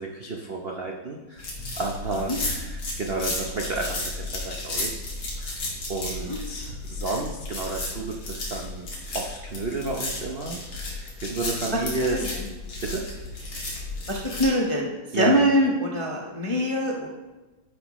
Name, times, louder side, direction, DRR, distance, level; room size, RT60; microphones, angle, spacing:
voice 1, 0.0-5.0 5.4-5.5 5.9-8.9 9.1-10.6 10.8-12.2 12.8-13.0 15.1-15.7, right 3 dB, 75° right, 0 dB, 0.5 m, -31 dB
sound 1, 1.4-14.5, left 2 dB, 70° left, 3.1 m, -33 dB
voice 2, 12.1-12.5 14.1-14.9 15.1-17.1, equal, 40° left, -2 dB, 0.4 m, -24 dB
11.5 x 9.9 x 3.1 m, 1.2 s
omnidirectional pair, 2.3 m